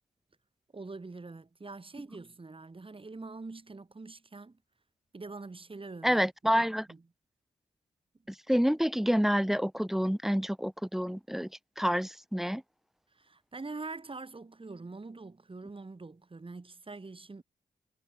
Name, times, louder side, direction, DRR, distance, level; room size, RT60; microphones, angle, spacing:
voice 1, 0.7-4.6 5.1-7.0 13.1-17.4, right 3 dB, 30° right, 2.4 m, -44 dB
voice 2, 6.0-6.9 8.5-11.5 11.8-12.6, equal, ahead, 0.3 m, -28 dB
supercardioid pair, 40°, 17 cm